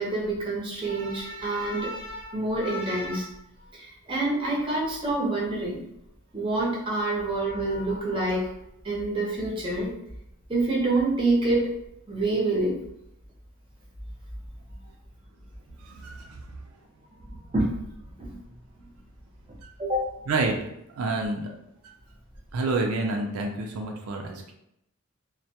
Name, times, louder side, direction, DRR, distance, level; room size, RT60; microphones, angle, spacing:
voice 1, 0.0-3.3 3.7-5.8 6.3-8.5 8.8-9.9 10.5-11.7 12.1-12.7 17.5-17.6 18.2-18.3 19.8-20.1, right 2 dB, 25° right, -4 dB, 0.6 m, -27 dB
voice 2, 15.8-16.5 20.3-20.6 20.9-21.5 22.5-24.5, right 3 dB, 90° right, 2 dB, 0.4 m, -28 dB
2.1 x 2.1 x 2.7 m, 0.79 s
head